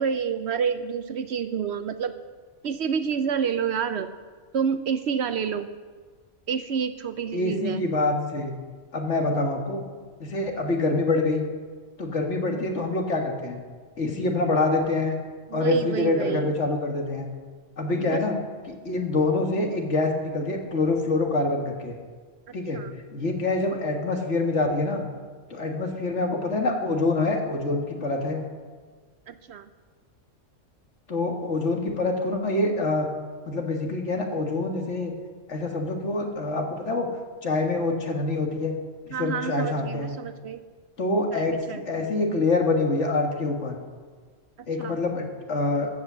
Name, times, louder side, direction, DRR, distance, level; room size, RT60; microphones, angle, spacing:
voice 1, 0.0-2.1 2.6-4.1 4.5-5.7 6.5-7.8 12.5-12.7 15.5-16.5 17.9-18.2 22.7-22.9 29.3-29.7 39.1-40.6 41.3-42.2 44.8-45.0, right 7 dB, 65° right, 11 dB, 0.8 m, -29 dB
voice 2, 7.3-8.5 8.9-9.8 10.2-11.4 12.0-13.6 14.0-15.2 15.5-17.3 17.8-18.4 18.7-22.0 22.5-22.8 23.1-25.0 25.5-28.4 31.1-33.1 33.5-35.1 35.5-37.1 37.4-38.7 39.2-40.2 41.0-41.6 41.9-43.8 44.7-45.9, left 2 dB, 65° left, 2 dB, 2.0 m, -25 dB
14.5 x 8.3 x 7.4 m, 1.5 s
omnidirectional pair, 1.3 m